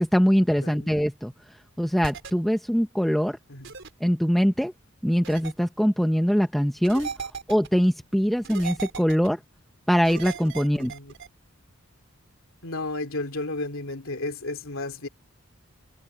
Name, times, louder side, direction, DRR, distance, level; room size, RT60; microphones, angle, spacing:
voice 1, 0.0-1.3 1.8-3.4 4.0-4.7 5.0-7.1 7.5-9.4 9.9-10.9, equal, ahead, 0.9 m, -22 dB
sound 1, 2.0-2.3 3.6-3.9 5.2-5.5 6.8-7.7 8.4-9.3 10.0-11.3, right 5 dB, 60° right, 4.5 m, -36 dB
voice 2, 10.6-11.1 12.6-15.1, left 2 dB, 70° left, 2.6 m, -33 dB
head